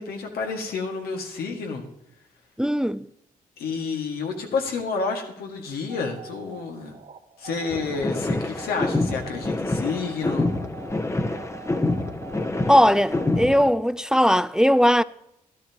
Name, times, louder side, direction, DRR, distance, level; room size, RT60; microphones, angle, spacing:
voice 1, 0.0-1.8 3.6-6.9 7.4-10.5, left 4 dB, 85° left, 1.9 m, -29 dB
voice 2, 2.6-3.1 12.7-15.0, equal, 5° right, 0.4 m, -19 dB
sound 1, 5.9-13.7, right 9 dB, 55° right, 1.1 m, -45 dB
sound 2, 7.7-13.7, left 2 dB, 20° left, 0.9 m, -27 dB
13.0 x 13.0 x 3.0 m
cardioid pair, 65°, 15 cm